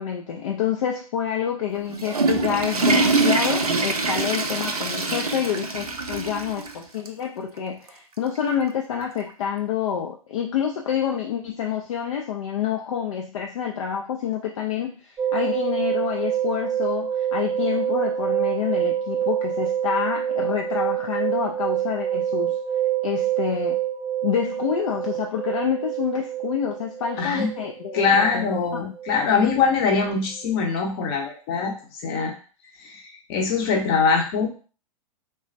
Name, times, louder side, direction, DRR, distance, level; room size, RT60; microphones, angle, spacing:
voice 1, 0.0-22.6 23.0-23.8 24.2-28.9, left 8 dB, 60° left, 1 dB, 0.4 m, -28 dB
Water / Toilet flush, 1.7-6.7 7.1-7.2 7.9-8.0 9.3-9.4, right 3 dB, 85° right, 0.4 m, -24 dB
sound 1, 15.2-30.1 30.4-30.5, right 10 dB, 15° right, 0.4 m, -27 dB
voice 2, 27.2-27.5 27.9-31.7 32.0-32.3 32.8-34.5, left 5 dB, 40° left, 2 dB, 0.8 m, -22 dB
3.3 x 2.1 x 2.6 m, 0.38 s
figure-of-eight pair, 105°, 19 cm